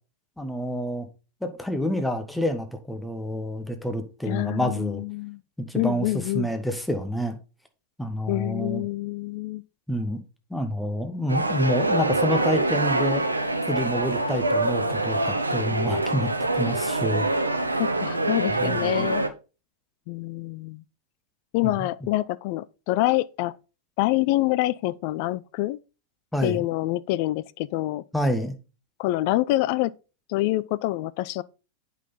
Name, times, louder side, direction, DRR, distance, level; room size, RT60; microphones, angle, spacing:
voice 1, 0.4-1.1 1.4-5.0 5.7-7.4 8.0-8.8 9.9-10.2 10.5-13.2 13.7-16.3 16.5-17.3 18.5-19.1 21.6-21.9 26.3-26.6 28.1-28.6, equal, 5° left, 1.3 m, -28 dB
voice 2, 4.3-5.4 5.7-6.5 8.3-9.6 17.8-19.2 20.1-20.8 21.5-23.6 24.0-25.8 26.4-28.0 29.0-29.9 30.3-31.4, left 17 dB, 45° left, 0.4 m, -26 dB
sound 1, 11.3-19.3, right 2 dB, 80° right, 0.8 m, -25 dB
8.2 x 5.7 x 4.0 m
figure-of-eight pair, 90°, 0 cm